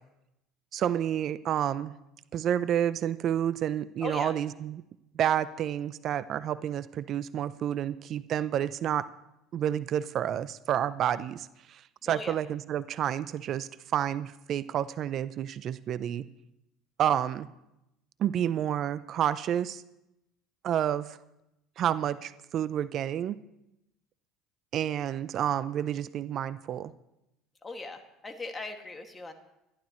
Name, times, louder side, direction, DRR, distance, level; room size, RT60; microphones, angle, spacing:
voice 1, 0.7-1.9 2.3-4.8 5.1-9.1 9.5-16.2 17.0-17.5 18.2-19.8 20.6-21.2 21.8-23.4 24.7-26.9, right 10 dB, 55° right, 15 dB, 0.5 m, -29 dB
voice 2, 4.0-4.3 12.0-12.4 27.6-29.3, left 3 dB, 20° left, 4 dB, 2.1 m, -39 dB
27.0 x 11.5 x 3.1 m, 0.89 s
supercardioid pair, 80°, 0 cm